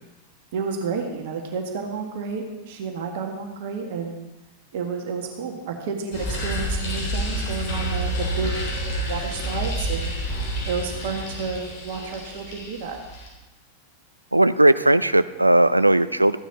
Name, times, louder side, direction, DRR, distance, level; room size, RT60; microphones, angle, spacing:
voice 1, 0.5-4.3 4.7-8.6 8.9-10.1 10.6-13.0, right 5 dB, 50° right, 2 dB, 1.6 m, -31 dB
sound 1, 6.1-13.3, equal, 45° left, 3.6 m, -29 dB
voice 2, 14.3-16.4, right 1 dB, 85° right, 15 dB, 0.4 m, -17 dB
14.5 x 10.0 x 4.1 m, 1.1 s
figure-of-eight pair, 90°, 0 cm